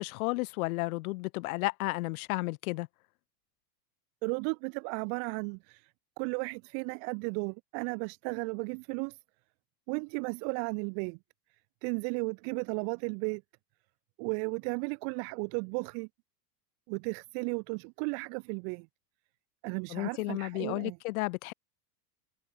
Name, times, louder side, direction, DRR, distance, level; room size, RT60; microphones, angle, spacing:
voice 1, 0.0-2.9 19.9-21.5, left 23 dB, 60° left, 1.6 m, -33 dB
voice 2, 4.2-5.9 6.2-9.2 9.9-11.2 11.8-13.4 14.2-16.1 16.9-18.9 19.6-21.0, right 40 dB or more, 30° right, 0.5 m, -34 dB
supercardioid pair, 160°, 48 cm